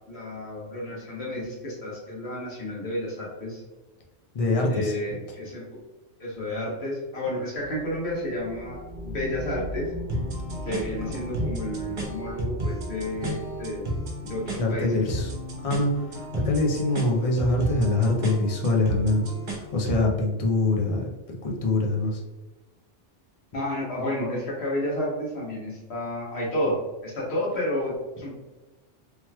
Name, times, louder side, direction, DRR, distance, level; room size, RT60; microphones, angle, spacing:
voice 1, 0.1-3.6 4.7-5.7 6.2-9.9 10.6-14.0 14.2-15.0 23.5-26.8 27.0-28.3, left 1 dB, 65° left, -5 dB, 1.4 m, -31 dB
voice 2, 4.3-4.9 14.6-15.3 15.6-19.2 19.5-21.1 21.4-22.2, left 2 dB, 40° left, 0 dB, 0.5 m, -24 dB
sound 1, 7.6-17.6, left 1 dB, 5° left, 1.3 m, -41 dB
sound 2, 10.1-20.1, right 1 dB, 50° right, 0.8 m, -33 dB
3.1 x 3.0 x 2.2 m, 1.2 s
omnidirectional pair, 1.2 m